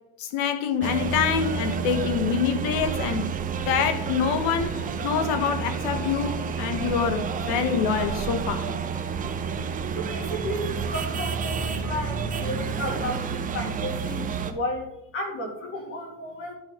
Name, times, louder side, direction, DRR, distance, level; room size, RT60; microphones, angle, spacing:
voice 1, 0.2-3.3 3.7-8.8, left 7 dB, 60° left, 1.4 m, -26 dB
sound 1, 0.8-14.5, right 6 dB, 20° right, 0.7 m, -30 dB
voice 2, 9.9-16.6, left 1 dB, 35° left, 2.1 m, -33 dB
11.0 x 3.8 x 5.9 m
supercardioid pair, 140°, 37 cm